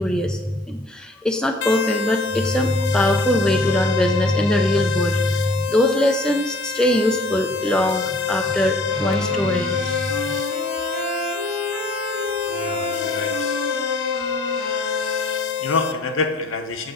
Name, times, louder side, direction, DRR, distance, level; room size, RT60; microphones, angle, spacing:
voice 1, 0.0-10.4, left 1 dB, 5° left, 3 dB, 0.4 m, -21 dB
sound 1, 1.6-15.9, left 8 dB, 65° left, 0.5 m, -26 dB
Wind instrument woodwind instrument, 8.9-15.8, right 1 dB, 70° right, 1.8 m, -31 dB
voice 2, 10.9-11.3 12.5-13.6 14.9-16.9, left 3 dB, 85° left, 5 dB, 0.8 m, -28 dB
7.8 x 3.8 x 6.7 m, 1.3 s
head